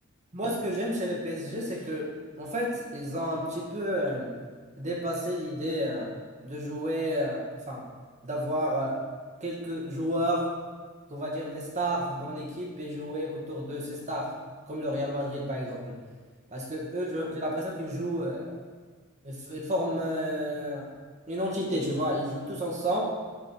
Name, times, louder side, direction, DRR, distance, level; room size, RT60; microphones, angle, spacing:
voice 1, 0.3-2.1 2.4-4.3 4.8-6.1 6.4-7.9 8.2-9.0 9.4-10.5 11.1-14.3 14.7-15.9 16.5-18.6 19.2-20.9 21.3-23.0, equal, 35° right, -2 dB, 1.9 m, -31 dB
11.5 x 5.2 x 4.6 m, 1.5 s
head